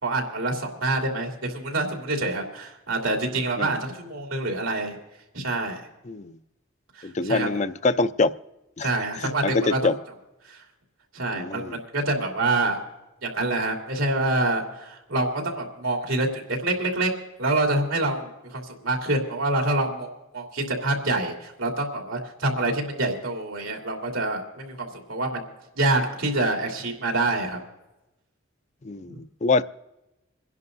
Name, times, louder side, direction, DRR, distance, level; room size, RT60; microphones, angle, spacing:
voice 1, 0.0-4.9 5.3-5.8 7.0-7.5 8.8-9.8 10.5-10.6 11.1-12.8 13.2-17.1 17.4-20.1 20.3-25.5 25.7-27.6 29.1-29.2, right 2 dB, 85° right, 1 dB, 2.9 m, -26 dB
voice 2, 7.0-8.3 8.8-8.9 9.2-10.0 11.3-11.8 28.8-29.6, left 3 dB, 35° left, 13 dB, 0.4 m, -25 dB
28.0 x 11.0 x 2.6 m, 0.96 s
head